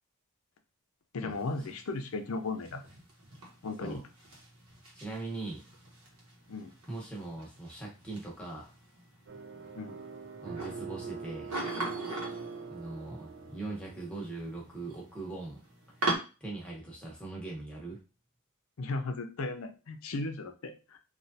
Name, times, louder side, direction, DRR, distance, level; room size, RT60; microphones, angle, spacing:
voice 1, 1.1-2.8 3.6-4.0 6.5-6.7 9.7-10.0 18.8-21.0, left 3 dB, 70° left, 7 dB, 0.5 m, -36 dB
sound 1, 1.3-16.2, right 2 dB, 75° right, 0.9 m, -42 dB
voice 2, 4.9-5.6 6.9-8.7 10.4-11.5 12.7-15.6 16.4-18.0, right 2 dB, 5° left, -3 dB, 0.8 m, -40 dB
sound 2, 9.3-14.5, right 5 dB, 50° right, 0.3 m, -43 dB
3.1 x 2.3 x 2.7 m, 0.32 s
head